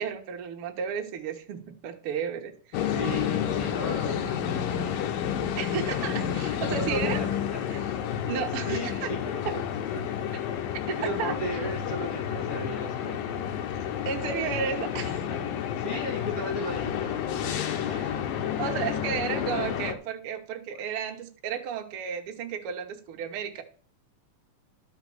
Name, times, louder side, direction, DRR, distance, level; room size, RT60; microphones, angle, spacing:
voice 1, 0.0-3.0 5.6-7.2 7.7-7.9 8.3-9.1 9.4-9.6 10.9-11.3 14.0-15.2 17.9-18.2 18.6-23.6, right 7 dB, 85° right, 1.2 m, -33 dB
sound 1, 2.7-19.9, left 9 dB, 75° left, 2.7 m, -30 dB
voice 2, 2.9-4.9 5.9-6.0 6.7-7.8 8.6-9.6 9.9-10.0 10.7-13.5 15.3-15.4 15.8-18.3 20.9-21.0, equal, 50° left, 4.2 m, -37 dB
13.0 x 5.8 x 6.2 m
omnidirectional pair, 4.3 m